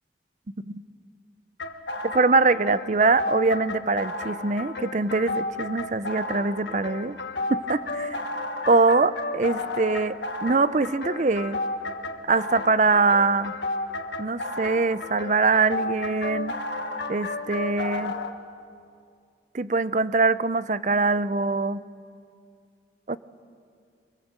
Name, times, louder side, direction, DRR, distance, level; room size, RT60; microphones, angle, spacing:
sound 1, 1.6-18.3, left 2 dB, 85° left, 1.6 m, -32 dB
voice 1, 2.0-7.2 7.5-8.2 8.7-11.6 12.3-13.5 14.2-16.5 17.1-18.2 19.5-21.8 23.1-23.2, right 3 dB, 40° right, 15 dB, 0.5 m, -23 dB
24.0 x 23.5 x 7.5 m, 2.4 s
head